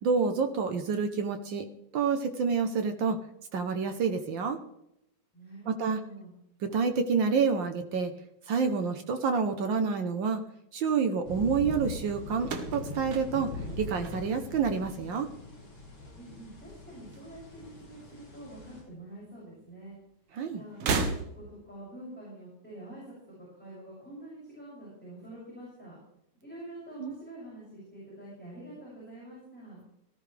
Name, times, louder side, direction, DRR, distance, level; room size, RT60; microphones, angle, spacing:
voice 1, 0.0-1.7 1.9-3.2 3.5-4.6 5.7-6.0 6.6-8.1 8.5-10.4 10.7-13.5 13.8-15.3 20.4-20.6 27.0-27.1, right 5 dB, 80° right, 7 dB, 1.0 m, -28 dB
voice 2, 5.3-6.3 16.2-20.0 20.5-26.0 26.4-29.8, right 1 dB, 5° left, -7 dB, 6.7 m, -46 dB
sound 1, 11.2-18.8, left 2 dB, 50° left, 6.7 m, -41 dB
sound 2, 12.4-14.7 15.0-15.6 16.7-17.7 18.0-18.1 19.2-19.3 20.7-21.7, right 4 dB, 60° right, 2.1 m, -34 dB
18.5 x 14.0 x 3.4 m, 0.80 s
omnidirectional pair, 3.3 m